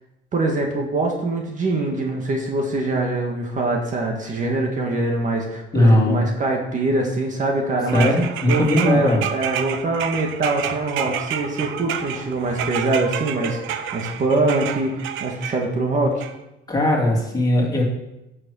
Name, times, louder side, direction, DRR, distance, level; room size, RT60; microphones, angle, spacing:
voice 1, 0.3-8.1 8.5-16.2, right 2 dB, 40° right, 1 dB, 1.9 m, -23 dB
voice 2, 5.7-6.2 7.9-9.2 16.7-17.8, left 1 dB, 20° left, -2 dB, 2.7 m, -18 dB
sound 1, 7.9-15.6 16.2-16.3, right 9 dB, 80° right, 0.9 m, -29 dB
10.0 x 6.6 x 6.4 m, 0.93 s
cardioid pair, 125°, 20 cm